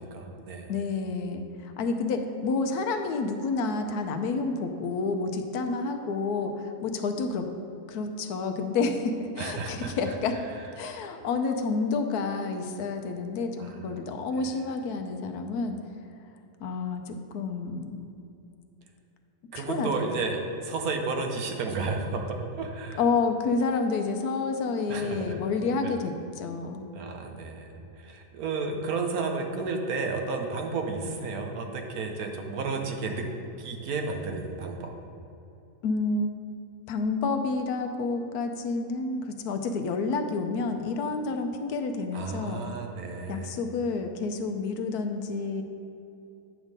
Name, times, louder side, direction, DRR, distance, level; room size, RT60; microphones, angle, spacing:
voice 1, 0.0-0.7 9.4-9.9 13.6-13.9 14.4-14.5 19.5-23.0 24.9-25.4 25.8-25.9 26.9-33.3 33.6-34.9 42.1-43.6, right 4 dB, 70° right, 3 dB, 1.2 m, -32 dB
voice 2, 0.7-7.5 7.9-10.4 10.7-15.8 16.6-18.0 19.5-19.9 22.9-26.9 35.8-36.3 36.9-42.6 43.3-45.6, left 4 dB, 75° left, 6 dB, 1.1 m, -29 dB
9.1 x 3.7 x 6.4 m, 2.8 s
omnidirectional pair, 1.7 m